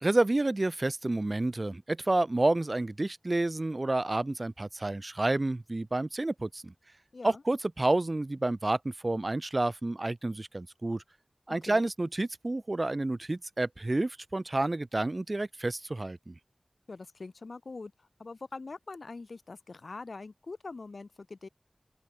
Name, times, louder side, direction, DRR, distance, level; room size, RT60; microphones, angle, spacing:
voice 1, 0.0-6.7 7.2-11.0 11.5-16.3, right 2 dB, 45° right, 0.5 m, -29 dB
voice 2, 16.9-21.5, left 3 dB, 85° left, 1.3 m, -43 dB
open air
wide cardioid pair, 60°, 0 cm